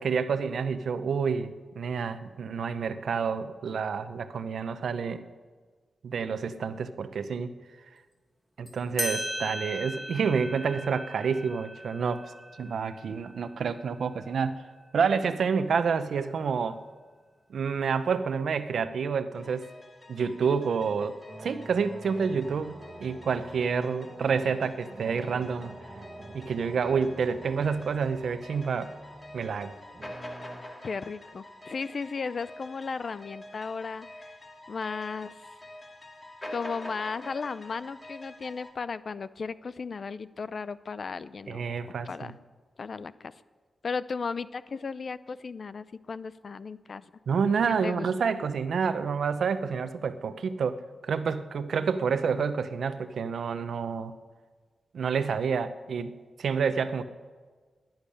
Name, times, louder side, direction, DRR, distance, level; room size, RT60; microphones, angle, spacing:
voice 1, 0.0-5.2 6.0-7.5 8.6-14.6 14.9-16.8 17.5-19.7 20.1-25.8 26.3-28.9 29.3-29.8 41.5-42.3 47.3-54.2 54.9-57.0, right 6 dB, 75° right, 11 dB, 0.8 m, -29 dB
sound 1, 8.7-8.8 9.0-14.1, equal, 5° left, 1.8 m, -38 dB
sound 2, 19.3-38.7, left 1 dB, 25° left, 2.1 m, -47 dB
sound 3, 21.3-30.6, right 2 dB, 30° right, 1.4 m, -47 dB
voice 2, 30.8-34.3 34.7-35.4 36.5-41.7 42.0-42.3 42.8-43.4 43.8-47.0 47.8-48.3, left 5 dB, 45° left, 16 dB, 0.5 m, -35 dB
12.0 x 10.5 x 10.0 m, 1.5 s
wide cardioid pair, 145°, 0 cm